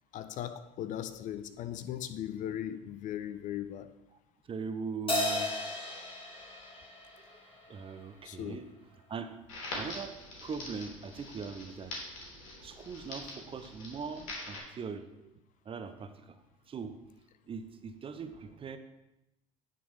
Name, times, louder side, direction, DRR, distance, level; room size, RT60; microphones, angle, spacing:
voice 1, 0.1-3.9 8.2-8.6, left 11 dB, 50° left, 0.5 m, -38 dB
voice 2, 4.4-5.5 7.3-7.4 7.7-8.7 9.1-9.3 9.7-11.9 12.6-15.3 15.6-16.4 16.7-17.0 17.5-18.8, right 5 dB, 30° right, 0.7 m, -41 dB
Crash cymbal, 5.1-7.8, left 1 dB, 30° left, 2.2 m, -34 dB
Crackle, 9.5-14.6, left 2 dB, 75° left, 2.3 m, -44 dB
9.6 x 3.8 x 4.8 m
hypercardioid pair, 65°, 17 cm